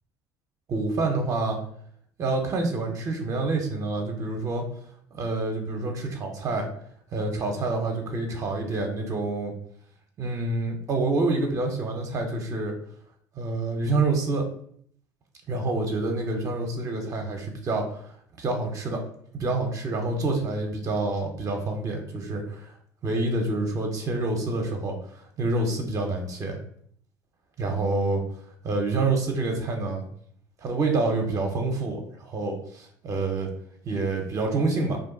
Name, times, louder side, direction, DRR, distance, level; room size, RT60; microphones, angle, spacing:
voice 1, 0.7-1.6 2.2-4.7 5.1-6.7 7.1-9.5 10.2-12.7 13.4-14.5 15.5-18.0 18.4-19.0 19.3-22.7 23.0-25.0 25.4-26.6 27.6-28.2 28.6-30.1 30.6-33.5 33.8-35.0, right 3 dB, 40° right, 3 dB, 0.6 m, -27 dB
2.5 x 2.2 x 3.7 m, 0.63 s
supercardioid pair, 85°, 9 cm